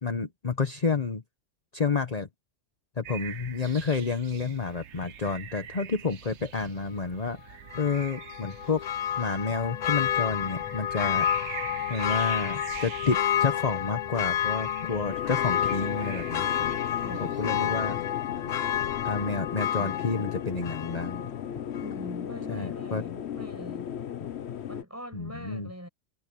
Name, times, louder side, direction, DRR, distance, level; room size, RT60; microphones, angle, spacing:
voice 1, 0.0-1.2 1.7-2.3 3.0-7.4 7.7-8.8 9.2-11.3 11.9-16.8 17.2-18.0 18.4-18.5 19.0-21.3 22.5-23.0 25.1-25.7, left 4 dB, 35° left, 1.2 m, -30 dB
sound 1, 3.0-17.8, right 9 dB, 85° right, 1.1 m, -44 dB
Church bell, 7.7-21.4 21.7-21.8, left 10 dB, 55° left, 0.5 m, -30 dB
sound 2, 15.1-24.8, left 9 dB, 75° left, 1.1 m, -36 dB
voice 2, 17.0-18.1 19.8-20.3 21.8-23.9 24.7-25.9, equal, 15° right, 5.9 m, -43 dB
omnidirectional pair, 1.2 m